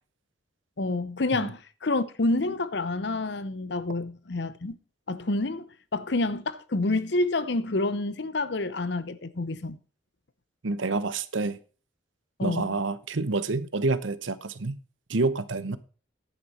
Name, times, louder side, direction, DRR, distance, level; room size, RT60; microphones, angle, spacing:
voice 1, 0.8-4.8 5.1-9.8 12.4-12.8, left 2 dB, 65° left, 0.8 m, -28 dB
voice 2, 10.6-11.6 12.4-14.8 15.1-15.8, right 3 dB, 85° right, 0.9 m, -28 dB
10.5 x 9.0 x 4.2 m
head